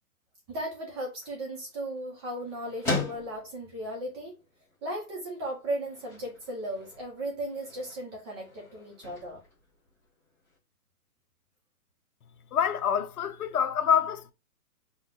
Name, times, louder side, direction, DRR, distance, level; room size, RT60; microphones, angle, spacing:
voice 1, 0.5-4.4 4.8-9.4, right 1 dB, 15° right, 0.7 m, -36 dB
sound 1, 0.8-10.6, left 3 dB, 5° left, 1.0 m, -41 dB
voice 2, 12.5-14.3, left 8 dB, 70° left, 0.7 m, -26 dB
5.4 x 2.3 x 3.8 m
hypercardioid pair, 150°, 46 cm